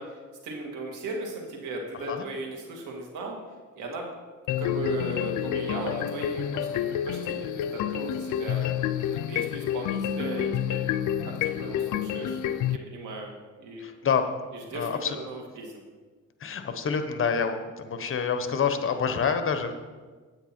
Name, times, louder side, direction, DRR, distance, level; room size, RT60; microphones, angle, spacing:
voice 1, 0.0-3.4 3.8-4.1 4.6-8.6 9.0-10.9 11.3-12.4 12.7-13.3 13.6-13.9 14.5-15.8, right 2 dB, 85° right, 0 dB, 2.2 m, -37 dB
sound 1, 4.5-12.8, left 10 dB, 85° left, 0.5 m, -29 dB
voice 2, 13.8-14.3 14.7-15.2 16.4-19.7, left 6 dB, 45° left, 8 dB, 1.0 m, -27 dB
9.1 x 8.8 x 4.4 m, 1.4 s
cardioid pair, 90°, 30 cm